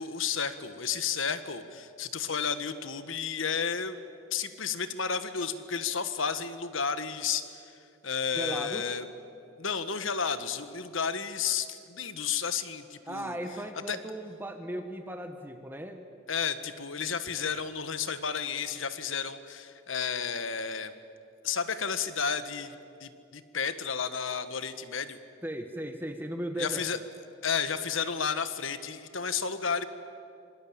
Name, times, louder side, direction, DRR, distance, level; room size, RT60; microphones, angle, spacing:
voice 1, 0.0-4.0 4.3-7.7 8.0-9.0 9.6-13.4 13.9-14.0 16.3-20.9 21.4-25.2 26.6-27.0 27.4-29.8, left 6 dB, 75° left, 11 dB, 1.5 m, -32 dB
voice 2, 8.3-8.9 13.1-16.0 25.4-27.0, right 1 dB, 10° right, 6 dB, 1.2 m, -37 dB
26.0 x 23.5 x 8.8 m, 2.6 s
head